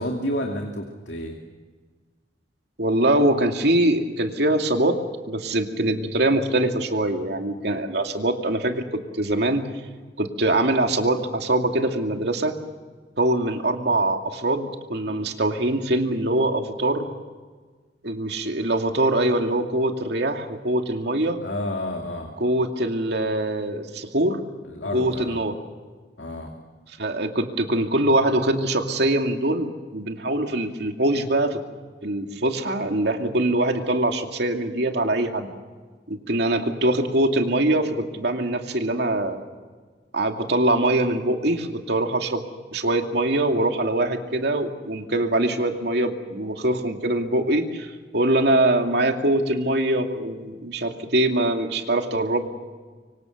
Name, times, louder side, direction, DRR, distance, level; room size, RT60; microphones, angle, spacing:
voice 1, 0.0-1.4 21.4-22.3 24.7-25.4 26.2-26.5, left 1 dB, 75° left, 2 dB, 2.6 m, -30 dB
voice 2, 2.8-5.0 5.3-9.6 10.2-12.5 13.2-17.1 18.0-21.4 22.4-24.4 24.9-25.5 27.0-31.6 32.0-35.5 36.1-39.4 40.1-42.4 42.7-52.5, right 1 dB, 65° right, 4 dB, 2.5 m, -23 dB
25.0 x 25.0 x 6.7 m, 1.5 s
head